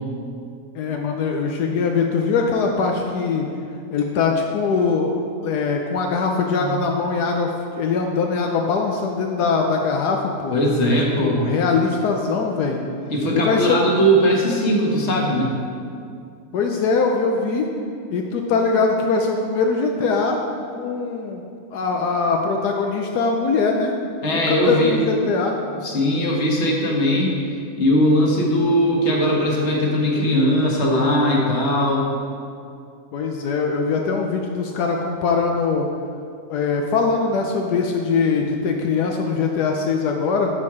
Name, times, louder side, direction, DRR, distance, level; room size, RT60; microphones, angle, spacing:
voice 1, 0.7-3.5 3.9-5.1 5.4-10.6 11.2-12.8 13.3-13.8 16.5-17.7 18.1-20.4 20.7-21.4 21.7-23.9 24.2-25.6 33.1-35.9 36.5-40.5, left 4 dB, 80° left, 2 dB, 1.2 m, -22 dB
voice 2, 10.5-11.4 13.1-15.6 24.2-24.9 25.8-27.4 27.8-32.1, equal, 45° left, -2 dB, 1.6 m, -19 dB
13.0 x 4.4 x 4.8 m, 2.3 s
omnidirectional pair, 1.7 m